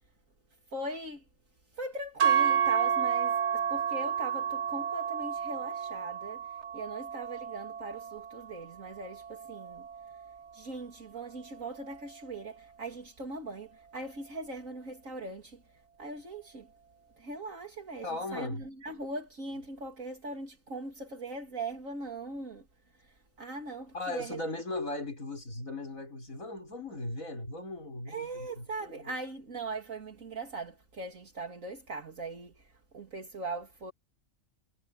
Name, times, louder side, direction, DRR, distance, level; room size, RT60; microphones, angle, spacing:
voice 1, 0.7-1.2 1.7-9.9 10.5-15.6 16.0-16.7 17.2-22.6 23.0-24.4 28.1-33.9, right 2 dB, 70° right, 3.2 m, -40 dB
sound 1, 2.2-10.4, right 8 dB, 50° right, 2.3 m, -31 dB
voice 2, 18.0-18.6 23.9-29.1, left 2 dB, 75° left, 6.7 m, -38 dB
omnidirectional pair, 1.4 m